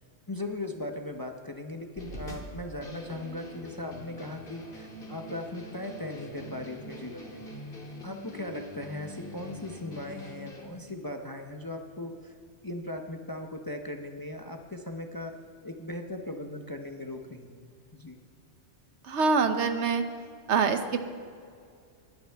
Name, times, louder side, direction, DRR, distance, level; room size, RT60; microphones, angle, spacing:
voice 1, 0.3-7.4 8.0-12.3 12.6-15.3 15.6-18.2, left 1 dB, 25° left, 4 dB, 0.6 m, -38 dB
sound 1, 1.9-10.7, left 1 dB, 55° left, 2.0 m, -44 dB
voice 2, 19.1-20.0 20.5-21.0, right 5 dB, 75° right, 8 dB, 1.1 m, -25 dB
21.0 x 9.7 x 3.4 m, 2.2 s
omnidirectional pair, 1.2 m